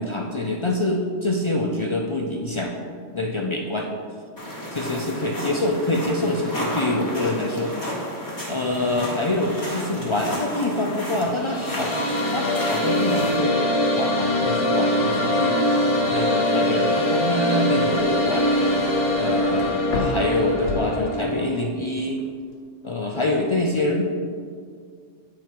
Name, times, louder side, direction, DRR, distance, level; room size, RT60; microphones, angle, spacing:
voice 1, 0.0-2.8 3.1-3.9 4.7-7.7 8.5-11.9 12.3-13.7 13.9-15.8 16.1-18.5 19.2-22.2 22.8-24.0, left 1 dB, 55° left, 0 dB, 0.3 m, -25 dB
sound 1, 4.4-13.4, equal, 15° left, 1.6 m, -32 dB
sound 2, 11.2-21.4, left 1 dB, 30° left, 0.9 m, -22 dB
sound 3, 17.5-21.6 22.0-22.5, left 2 dB, 70° left, 1.3 m, -34 dB
8.9 x 4.6 x 4.6 m, 2.1 s
omnidirectional pair, 1.3 m